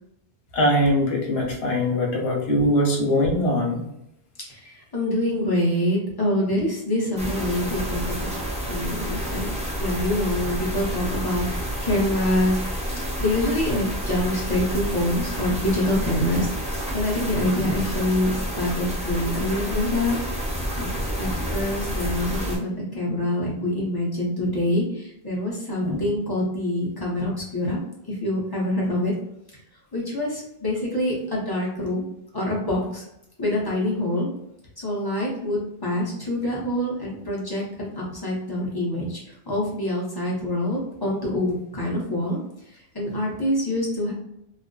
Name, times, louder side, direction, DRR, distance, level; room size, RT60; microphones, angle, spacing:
voice 1, 0.5-3.9 17.6-17.7 25.8-26.0, left 1 dB, 85° left, -1 dB, 0.9 m, -22 dB
voice 2, 4.5-8.3 8.7-9.5 9.8-11.5 11.8-12.6 13.2-16.5 16.9-20.2 20.8-20.9 21.2-27.8 28.1-29.1 29.9-32.0 32.3-33.0 33.4-34.3 34.8-42.4 42.9-44.1, left 1 dB, 25° left, -5 dB, 0.7 m, -25 dB
sound 1, 7.2-22.6, equal, 10° right, 0.5 m, -29 dB
2.5 x 2.4 x 2.2 m, 0.80 s
omnidirectional pair, 1.0 m